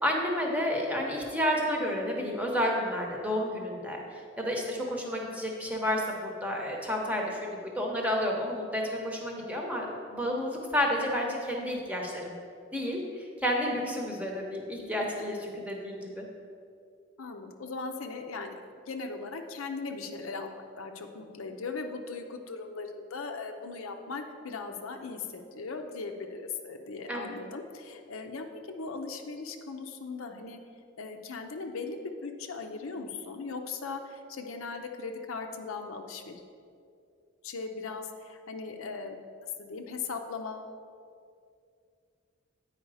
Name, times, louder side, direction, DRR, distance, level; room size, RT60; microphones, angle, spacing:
voice 1, 0.0-12.3 12.7-16.3 27.1-27.4, equal, 5° right, 0 dB, 0.9 m, -31 dB
voice 2, 17.2-18.5 18.9-20.5 20.8-30.6 31.0-36.4 37.4-39.2 39.6-40.7, left 4 dB, 80° left, 5 dB, 0.6 m, -38 dB
9.1 x 4.9 x 4.8 m, 2.3 s
head